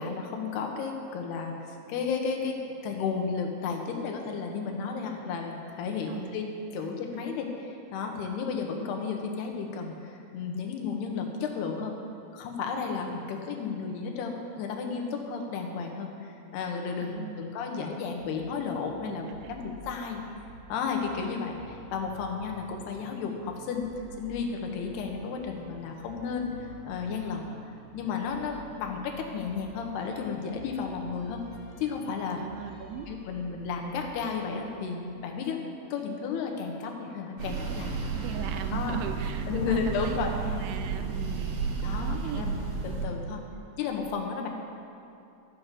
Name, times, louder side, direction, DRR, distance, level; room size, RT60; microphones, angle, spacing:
voice 1, 0.0-11.9 12.3-20.2 20.7-23.9 24.2-27.5 27.9-31.4 31.8-32.4 33.1-35.6 35.9-37.9 38.7-39.0 39.5-40.3 41.8-42.6 42.8-43.4 43.8-44.5, left 5 dB, 80° left, 2 dB, 3.1 m, -33 dB
voice 2, 6.1-6.4 6.8-7.3 17.0-17.4 17.7-17.8 19.0-19.2 19.4-19.6 32.3-33.1 38.1-40.2 40.5-42.5, right 8 dB, 85° right, 8 dB, 2.7 m, -39 dB
sound 1, 18.2-35.5, left 1 dB, 40° left, 3.1 m, -51 dB
sound 2, 37.4-43.0, right 5 dB, 65° right, 1.9 m, -32 dB
13.5 x 6.8 x 7.4 m, 2.7 s
omnidirectional pair, 4.7 m